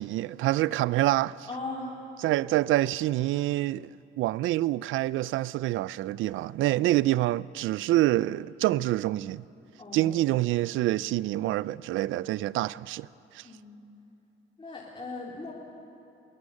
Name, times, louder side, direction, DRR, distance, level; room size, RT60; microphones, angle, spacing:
voice 1, 0.0-1.5 2.2-3.9 4.2-9.4 9.9-13.1 13.3-13.5, right 16 dB, 85° right, 0.5 m, -26 dB
voice 2, 1.5-2.0 9.8-10.2 13.4-13.8 14.6-15.5, left 2 dB, 25° left, 3.6 m, -38 dB
22.0 x 16.5 x 9.8 m
cardioid pair, 90°, 20 cm